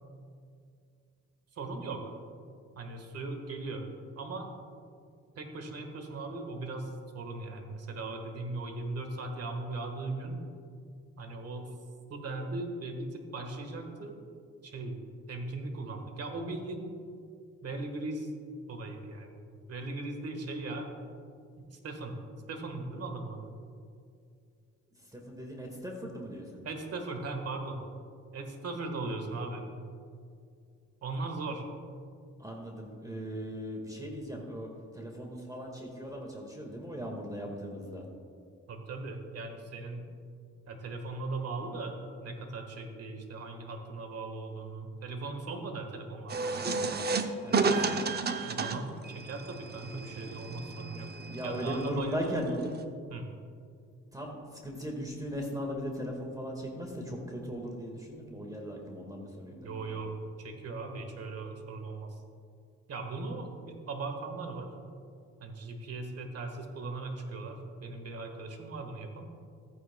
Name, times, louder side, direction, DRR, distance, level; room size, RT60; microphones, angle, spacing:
voice 1, 1.5-2.1 2.7-3.8 4.1-4.5 5.3-10.4 11.2-11.7 12.1-14.2 14.6-15.0 15.3-17.0 17.6-18.3 18.7-19.4 19.7-20.9 21.6-22.2 22.5-23.5 26.6-27.8 28.3-29.6 31.0-31.7 38.7-40.1 40.7-46.8 48.5-51.1 51.4-52.6 53.1-53.3 59.5-62.2 62.9-64.7 65.4-69.3, right 3 dB, 55° right, 4 dB, 1.5 m, -38 dB
voice 2, 25.1-26.6 32.4-34.7 34.9-38.1 47.4-47.7 51.3-52.5 54.1-54.4 54.6-60.0, equal, 10° right, 1 dB, 1.7 m, -38 dB
sound 1, 46.3-52.8, right 4 dB, 35° right, 0.6 m, -32 dB
14.5 x 9.1 x 2.2 m, 2.3 s
cardioid pair, 90°, 30 cm